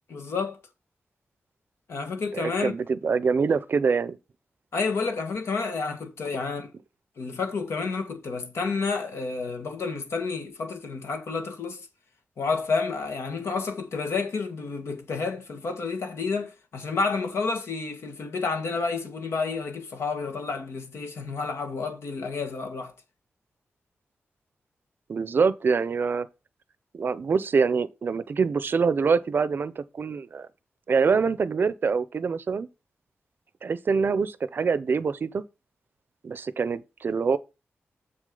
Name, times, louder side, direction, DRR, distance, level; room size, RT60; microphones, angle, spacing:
voice 1, 0.1-0.6 1.9-2.7 4.7-6.7 7.2-11.9 12.4-22.9, left 4 dB, 80° left, 1.5 m, -30 dB
voice 2, 2.3-4.2 25.1-26.3 26.9-30.5 30.9-32.7 33.6-35.4 36.2-37.4, right 5 dB, 50° right, 0.5 m, -25 dB
7.3 x 6.3 x 3.8 m
wide cardioid pair, 135°, 4 cm